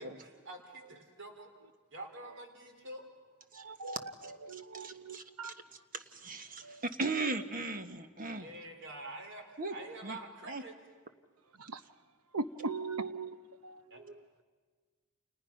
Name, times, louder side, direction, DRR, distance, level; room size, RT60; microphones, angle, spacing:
voice 1, 0.0-1.5 1.9-3.0 8.4-10.7 13.9-14.0, right 2 dB, 60° right, 3.4 m, -47 dB
voice 2, 3.5-5.5 6.6-6.8 11.5-11.8 12.3-13.4 13.6-14.4, right 3 dB, 80° right, 1.0 m, -40 dB
voice 3, 4.7-5.5 5.9-8.5 9.6-9.7 10.0-10.2 10.5-10.6, right 3 dB, 40° right, 1.4 m, -37 dB
30.0 x 29.0 x 5.9 m
head